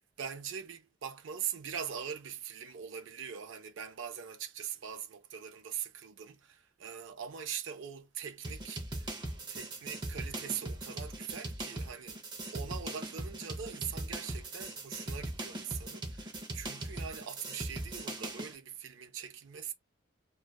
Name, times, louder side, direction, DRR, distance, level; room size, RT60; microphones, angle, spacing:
voice 1, 0.2-9.2 9.5-12.2 12.5-19.7, right 8 dB, 75° right, 0.5 m, -42 dB
sound 1, 8.4-18.5, right 1 dB, 20° right, 0.5 m, -40 dB
2.6 x 2.2 x 2.2 m
head